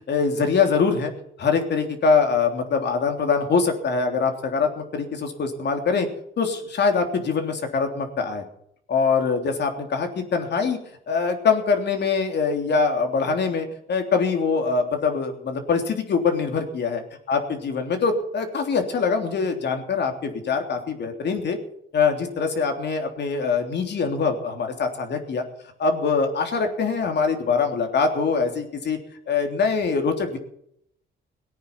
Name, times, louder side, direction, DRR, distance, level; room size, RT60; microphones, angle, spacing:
voice 1, 0.1-1.1 1.4-6.1 6.4-8.4 8.9-10.8 11.1-21.6 21.9-25.4 25.8-29.0 29.3-30.4, left 5 dB, 60° left, 4 dB, 3.4 m, -23 dB
19.0 x 9.3 x 6.0 m, 0.71 s
cardioid pair, 90°, 20 cm